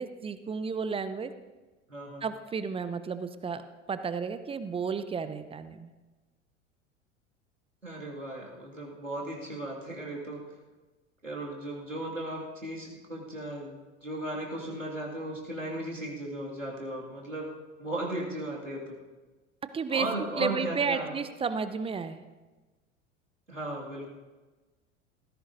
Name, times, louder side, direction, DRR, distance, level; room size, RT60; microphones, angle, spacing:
voice 1, 0.0-1.3 2.2-3.6 3.9-5.9 19.7-20.1 20.4-22.2, right 5 dB, 15° right, 11 dB, 0.6 m, -32 dB
voice 2, 1.9-2.2 7.8-10.4 11.2-13.8 14.0-17.5 17.8-19.0 19.9-21.2 23.5-24.1, right 1 dB, 90° right, -3 dB, 2.3 m, -36 dB
17.5 x 15.0 x 2.7 m, 1.2 s
figure-of-eight pair, 75°, 37 cm